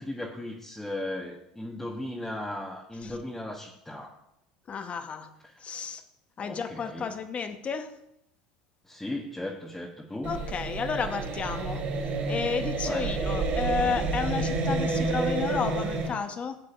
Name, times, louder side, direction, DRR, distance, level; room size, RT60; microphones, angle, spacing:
voice 1, 0.0-4.2 5.4-5.5 6.4-7.1 8.8-10.4 12.8-13.1, left 1 dB, 5° left, -2 dB, 1.3 m, -36 dB
voice 2, 4.7-5.3 5.6-6.0 6.4-7.9 10.2-16.6, left 6 dB, 35° left, 8 dB, 1.1 m, -32 dB
sound 1, 10.2-16.1, right 3 dB, 55° right, 3.7 m, -29 dB
16.5 x 8.3 x 2.6 m, 0.80 s
hypercardioid pair, 85°, 4 cm